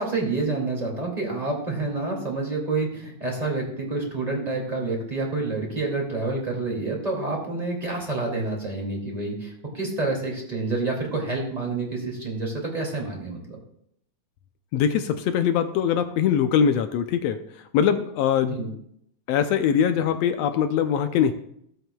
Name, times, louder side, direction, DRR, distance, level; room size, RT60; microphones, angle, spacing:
voice 1, 0.0-13.6 18.5-18.7, right 3 dB, 15° right, -1 dB, 2.0 m, -28 dB
voice 2, 14.7-17.4 17.7-18.6 19.3-21.3, left 8 dB, 80° left, 8 dB, 1.5 m, -22 dB
16.5 x 7.9 x 2.3 m, 0.71 s
omnidirectional pair, 3.4 m